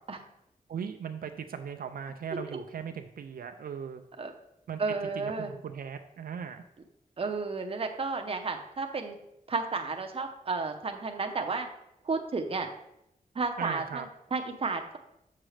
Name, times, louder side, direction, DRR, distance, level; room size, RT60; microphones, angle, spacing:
voice 1, 0.7-4.0 4.7-4.8 5.2-6.6 13.6-14.1, right 7 dB, 80° right, 7 dB, 0.4 m, -38 dB
voice 2, 4.8-5.5 7.2-9.2 9.5-11.7 12.0-12.7 13.3-15.0, right 4 dB, 40° right, 5 dB, 0.7 m, -32 dB
7.4 x 6.2 x 3.2 m, 0.81 s
wide cardioid pair, 155°, 15 cm